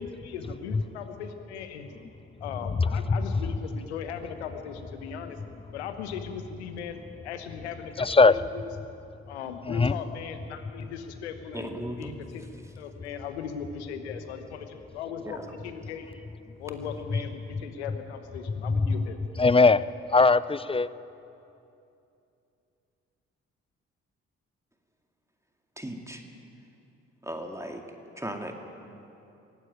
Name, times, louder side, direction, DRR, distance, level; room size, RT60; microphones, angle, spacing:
voice 1, 0.0-1.9 2.4-5.4 5.7-8.3 9.3-12.4 12.8-16.1 16.6-19.2, left 7 dB, 85° left, 8 dB, 1.3 m, -38 dB
voice 2, 2.8-3.2 8.0-8.4 9.7-10.0 17.1-17.2 18.6-18.9 19.4-20.9, left 3 dB, 15° left, 18 dB, 0.6 m, -21 dB
voice 3, 11.5-12.1 15.2-15.5 25.8-26.2 27.2-27.8 28.2-28.5, right 1 dB, 10° right, 3 dB, 2.2 m, -36 dB
20.0 x 15.5 x 9.2 m, 2.8 s
figure-of-eight pair, 40°, 32 cm